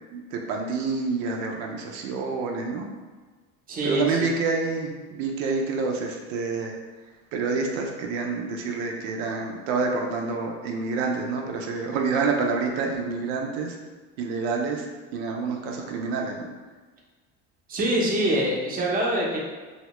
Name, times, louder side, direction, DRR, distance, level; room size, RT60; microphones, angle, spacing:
voice 1, 0.1-2.9 3.8-6.7 7.3-13.8 14.2-14.8 15.1-16.5, right 4 dB, 85° right, 2 dB, 0.5 m, -28 dB
voice 2, 3.7-4.3 17.7-19.4, right 1 dB, 25° right, -3 dB, 0.6 m, -25 dB
2.7 x 2.1 x 2.9 m, 1.3 s
supercardioid pair, 105°, 36 cm